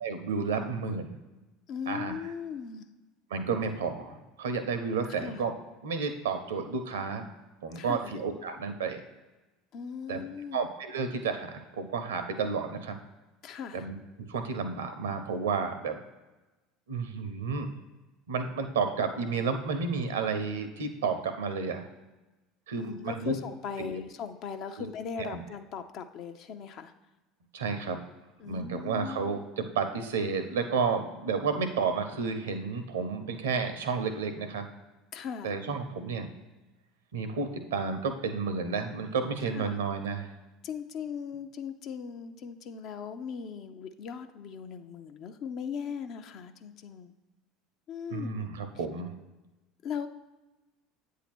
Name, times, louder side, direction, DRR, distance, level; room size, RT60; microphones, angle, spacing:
voice 1, 0.0-1.1 1.9-2.1 3.3-5.5 5.8-7.3 7.6-9.0 10.1-10.2 10.5-13.0 13.7-14.0 14.3-16.0 16.9-17.7 18.3-21.9 22.7-23.3 23.8-24.0 24.8-24.9 25.2-25.4 27.5-28.0 28.4-34.6 35.4-36.3 37.1-40.3 48.1-49.1, right 5 dB, 75° right, 8 dB, 0.7 m, -31 dB
voice 2, 1.7-2.8 5.1-5.4 7.7-8.1 9.7-10.6 13.4-13.9 22.8-26.9 28.4-29.4 35.1-35.5 39.5-39.8 40.6-47.1 47.9-48.5 49.8-50.1, left 7 dB, 50° left, 7 dB, 0.6 m, -39 dB
8.2 x 2.8 x 6.1 m, 1.1 s
figure-of-eight pair, 70°, 0 cm